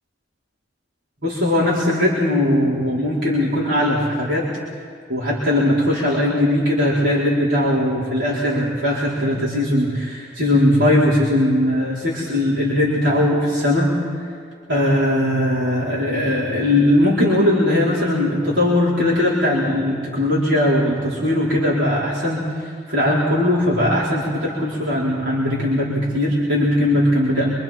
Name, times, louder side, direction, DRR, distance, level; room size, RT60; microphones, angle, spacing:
voice 1, 1.2-4.5 5.1-13.9 14.7-27.5, left 1 dB, 80° right, -7 dB, 4.9 m, -19 dB
28.5 x 24.5 x 4.6 m, 2.2 s
head